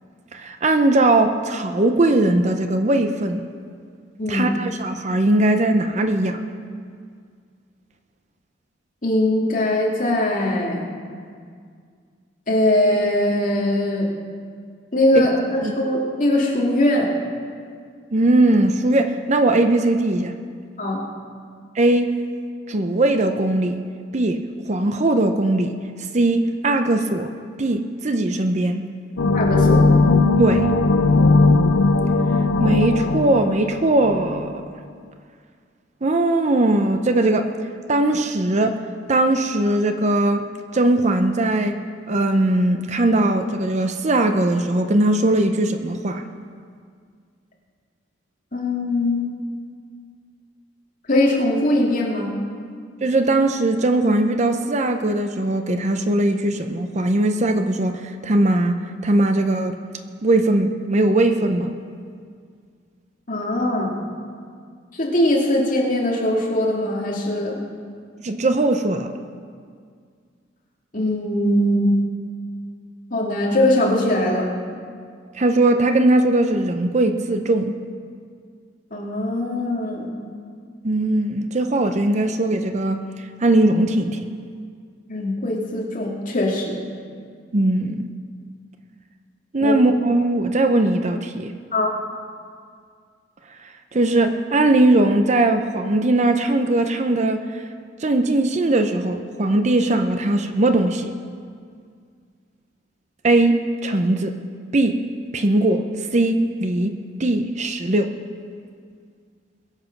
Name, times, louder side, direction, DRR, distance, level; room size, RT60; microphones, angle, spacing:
voice 1, 0.3-3.4 4.3-6.4 15.1-15.2 15.6-15.7 18.1-20.3 21.7-22.2 22.7-23.8 24.1-25.7 26.1-27.3 27.6-28.9 30.4-30.7 32.6-34.5 36.0-37.5 37.9-38.8 39.1-40.5 40.7-41.8 42.1-46.2 53.0-59.8 60.2-61.8 68.2-69.1 75.3-77.8 80.8-83.0 83.4-84.2 87.5-88.1 89.5-91.5 93.9-97.6 98.0-101.1 103.2-104.3 104.7-105.0 105.3-108.1, right 2 dB, 35° right, 7 dB, 0.6 m, -19 dB
voice 2, 9.0-10.9 12.5-14.1 14.9-17.1 20.8-21.0 29.3-29.9 48.5-49.3 51.1-52.3 63.3-64.0 64.9-67.6 70.9-72.0 73.1-74.5 78.9-80.1 85.1-86.8 89.6-89.7 91.7-91.9, left 1 dB, 45° left, -3 dB, 2.4 m, -21 dB
sound 1, 29.2-34.5, left 3 dB, 85° left, 0.6 m, -18 dB
21.5 x 7.4 x 5.9 m, 2.1 s
head